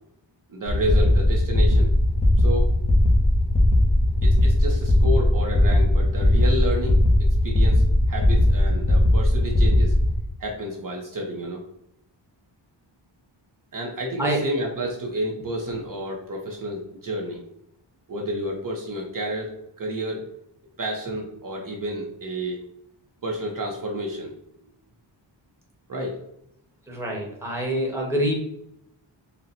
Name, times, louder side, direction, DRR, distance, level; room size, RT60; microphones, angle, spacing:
voice 1, 0.5-1.9 2.4-2.7 4.2-7.8 8.1-9.9 10.4-11.6 13.7-17.4 18.1-20.2 20.8-22.6 23.2-24.3 25.9-26.2, equal, 45° right, 0 dB, 0.7 m, -30 dB
sound 1, 0.7-10.2, left 1 dB, 15° left, 0.7 m, -19 dB
voice 2, 26.9-28.4, right 1 dB, 5° right, -2 dB, 1.0 m, -25 dB
4.3 x 2.2 x 3.8 m, 0.77 s
wide cardioid pair, 140°, 45 cm